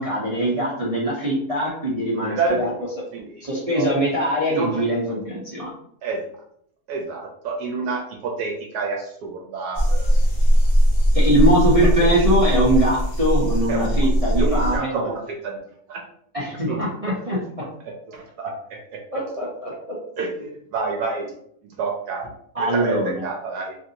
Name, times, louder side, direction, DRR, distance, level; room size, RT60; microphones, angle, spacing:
voice 1, 0.0-2.7 3.4-5.7 11.1-15.0 16.3-17.4 19.1-19.7 22.5-23.3, right 1 dB, 45° right, -6 dB, 0.4 m, -22 dB
voice 2, 2.1-3.4 3.7-3.9 4.5-4.8 6.0-6.2 6.9-10.2 12.0-12.2 13.7-14.1 14.4-15.6 15.9-16.0 16.7-16.8 18.1-19.0 20.2-21.3 21.8-22.3 22.6-23.8, right 4 dB, 75° right, 0 dB, 1.1 m, -28 dB
sound 1, 9.7-14.8, equal, 40° left, 0.7 m, -19 dB
3.3 x 2.5 x 2.8 m, 0.68 s
omnidirectional pair, 1.7 m